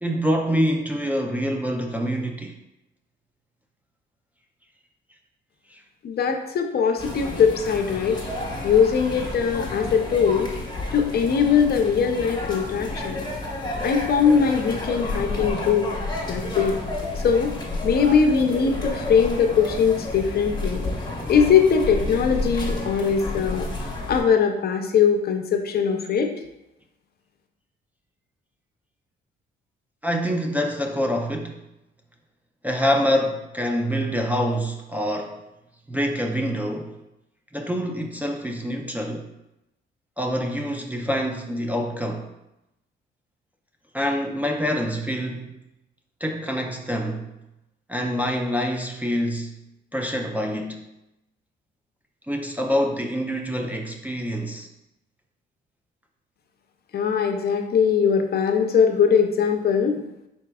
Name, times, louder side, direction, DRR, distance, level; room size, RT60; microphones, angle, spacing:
voice 1, 0.0-2.5 5.7-5.8 30.0-31.5 32.6-35.4 35.9-37.0 37.5-39.3 40.2-42.3 43.9-45.6 46.2-47.3 47.9-49.6 49.9-50.9 52.3-54.7, equal, 10° right, 1 dB, 0.4 m, -26 dB
voice 2, 6.0-8.2 8.6-10.5 10.9-13.2 13.8-15.9 16.3-16.8 17.2-17.5 17.8-20.8 21.3-23.7 24.1-26.3 56.9-60.0, left 6 dB, 50° left, 4 dB, 0.6 m, -21 dB
sound 1, 7.0-24.2, left 2 dB, 20° left, 1.0 m, -30 dB
4.5 x 4.1 x 2.2 m, 0.90 s
cardioid pair, 90°, 20 cm